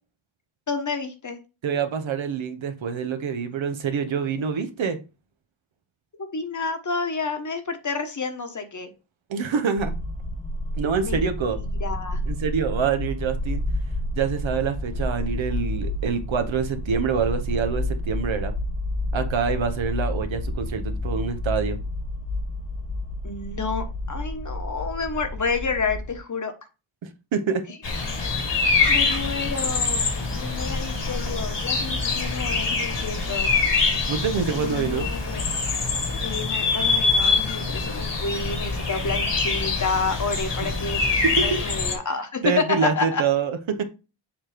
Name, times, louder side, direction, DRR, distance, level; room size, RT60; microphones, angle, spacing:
voice 1, 0.7-1.4 6.3-8.9 11.0-12.2 23.2-26.5 28.9-33.5 34.6-35.4 36.2-43.2, left 4 dB, 40° left, 1.2 m, -29 dB
voice 2, 1.6-5.0 9.3-9.9 10.8-11.6 12.3-13.6 14.1-18.5 19.1-21.8 27.3-27.6 34.1-35.1 41.4-41.6 42.4-43.8, right 6 dB, 75° right, 1.1 m, -26 dB
sound 1, 9.8-26.2, left 1 dB, 15° left, 1.1 m, -30 dB
sound 2, 27.8-41.9, left 4 dB, 60° left, 1.9 m, -24 dB
7.2 x 3.0 x 5.0 m
wide cardioid pair, 100°, 46 cm